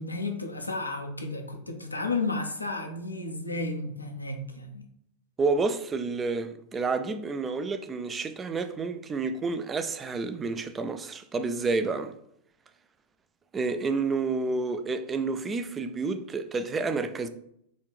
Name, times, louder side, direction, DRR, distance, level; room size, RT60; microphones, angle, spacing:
voice 1, 0.0-4.8, left 3 dB, 80° left, 0.5 m, -32 dB
voice 2, 5.4-12.1 13.5-17.3, right 4 dB, 20° right, 0.3 m, -29 dB
3.9 x 2.4 x 3.3 m
figure-of-eight pair, 90°, 0 cm